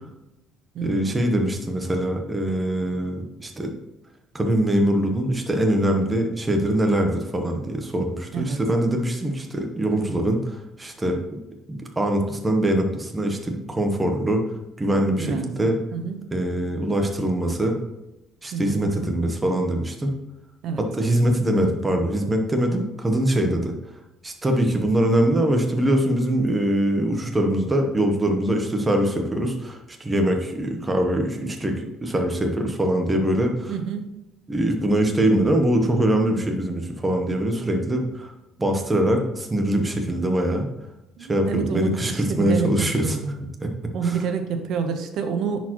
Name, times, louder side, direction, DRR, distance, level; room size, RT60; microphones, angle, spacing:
voice 1, 0.8-3.7 4.3-11.2 12.0-14.4 14.8-15.8 16.3-17.8 18.4-20.1 20.8-23.7 24.2-33.7 34.5-38.3 38.6-40.7 41.3-43.2 43.6-43.7 44.0-44.2, right 1 dB, 15° right, 3 dB, 0.9 m, -23 dB
voice 2, 15.2-16.2 18.5-18.9 20.6-20.8 21.6-21.7 33.7-34.1 41.2-43.3 43.9-45.6, right 6 dB, 60° right, 7 dB, 0.9 m, -28 dB
10.0 x 4.4 x 3.0 m, 0.92 s
cardioid pair, 140°, 0 cm